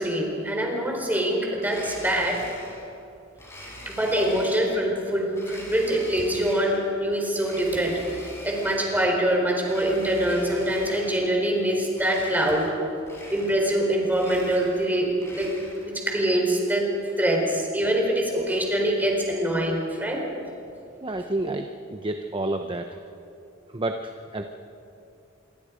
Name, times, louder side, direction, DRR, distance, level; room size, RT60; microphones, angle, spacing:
voice 1, 0.0-2.4 3.9-12.7 13.3-15.1 15.3-15.5 15.8-16.9 17.2-20.2, right 1 dB, 10° right, 0 dB, 4.2 m, -24 dB
Domestic sounds home sounds, 1.6-2.9 3.4-4.8 5.3-6.9 7.3-9.2 9.6-11.3 11.9-12.8 13.0-13.8 14.1-15.9, left 1 dB, 15° left, 6.0 m, -43 dB
voice 2, 21.0-22.9 23.7-24.4, right 2 dB, 25° right, 6 dB, 0.9 m, -29 dB
27.0 x 23.5 x 5.1 m, 2.7 s
head